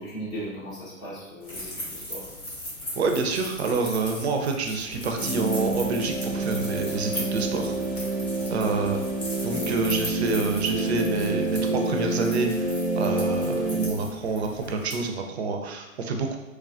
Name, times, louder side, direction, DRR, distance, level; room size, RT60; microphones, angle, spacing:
voice 1, 0.0-2.3, right 1 dB, 10° left, -8 dB, 0.5 m, -37 dB
sound 1, 1.4-15.0, left 1 dB, 85° left, 1.3 m, -38 dB
voice 2, 3.0-8.0 8.5-9.0 9.4-16.4, right 3 dB, 50° right, 4 dB, 0.4 m, -28 dB
sound 2, 4.9-11.7, left 1 dB, 70° left, 0.9 m, -44 dB
sound 3, 5.1-13.9, right 2 dB, 20° right, 0.7 m, -28 dB
3.2 x 2.2 x 2.4 m, 1.1 s
figure-of-eight pair, 115°, 42 cm